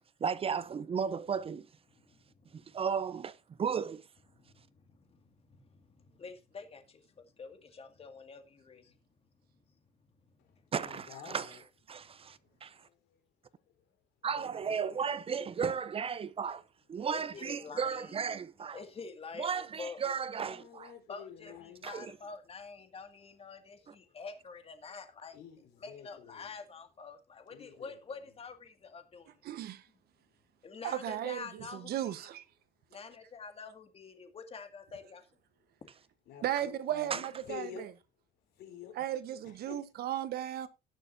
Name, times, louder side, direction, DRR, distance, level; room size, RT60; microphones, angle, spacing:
voice 1, 0.2-1.7 2.5-4.0 10.7-11.5 11.9-12.7 14.2-16.6 16.9-18.8 19.4-20.9 21.8-22.2 23.9-24.0 37.1-37.2, right 6 dB, 35° right, 0.6 m, -34 dB
voice 2, 1.9-2.7 4.3-9.0 17.1-18.2 18.7-20.4 21.1-25.4 25.8-29.4 30.6-32.3 32.9-35.3, left 5 dB, 35° left, 2.1 m, -47 dB
voice 3, 10.4-11.6 12.3-12.5 13.1-13.2 14.4-14.9 20.4-21.9 23.7-24.2 25.3-26.5 27.5-28.3 36.3-37.9 38.6-38.9 39.4-39.8, left 9 dB, 80° left, 3.9 m, -50 dB
voice 4, 29.4-29.8 30.8-32.4 36.4-37.7 39.0-40.7, right 12 dB, 65° right, 1.1 m, -35 dB
18.0 x 6.7 x 2.7 m
cardioid pair, 110°, 17 cm